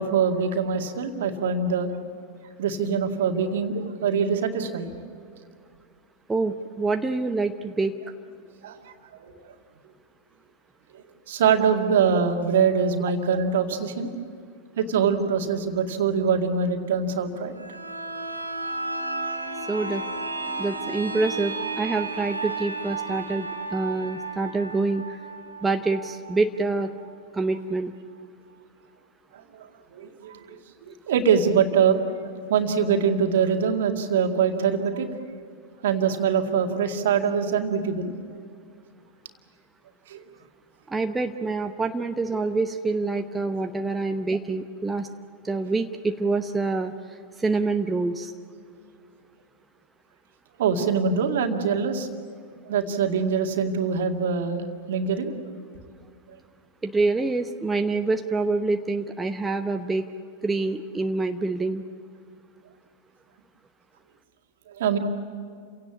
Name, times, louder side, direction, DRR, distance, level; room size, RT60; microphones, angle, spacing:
voice 1, 0.0-1.9 2.6-4.9 8.6-8.8 9.1-9.5 11.3-14.1 14.8-17.5 20.6-20.7 29.3-30.6 30.9-35.1 35.8-38.1 40.1-40.2 50.6-52.1 52.7-55.3 64.7-65.0, right 6 dB, 60° right, 4 dB, 2.1 m, -24 dB
voice 2, 6.3-7.9 19.7-20.0 20.6-25.2 25.6-26.9 27.3-27.9 40.9-45.1 45.4-46.9 47.4-48.3 56.8-60.1 60.4-61.8, right 3 dB, 10° right, 6 dB, 0.9 m, -26 dB
sound 1, 17.6-27.1 27.5-27.6, right 3 dB, 80° right, 2.1 m, -33 dB
30.0 x 17.0 x 8.5 m, 2.3 s
figure-of-eight pair, 90°, 0 cm